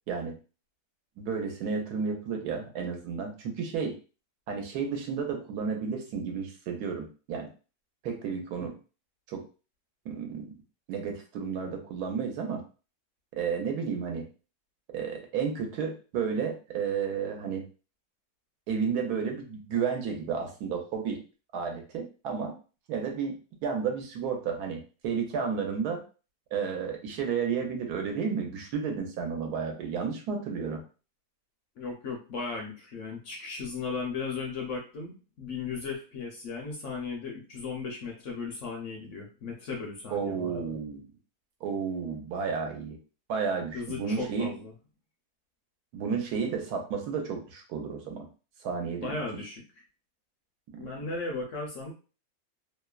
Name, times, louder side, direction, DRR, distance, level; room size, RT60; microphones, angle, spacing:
voice 1, 1.2-3.9 4.5-7.5 8.0-8.8 9.3-9.4 10.0-10.5 10.9-12.6 13.3-14.3 14.9-17.6 18.7-21.2 21.5-22.5 22.9-23.3 23.6-26.0 26.5-30.8 40.1-41.1 41.6-43.0 43.3-44.5 45.9-48.3 48.6-49.2 50.7-50.9, right 6 dB, 80° right, 3 dB, 1.2 m, -32 dB
voice 2, 31.8-40.7 43.7-44.7 49.0-49.8 50.8-51.9, left 4 dB, 65° left, 1 dB, 0.8 m, -36 dB
2.9 x 2.1 x 2.3 m, 0.35 s
omnidirectional pair, 1.7 m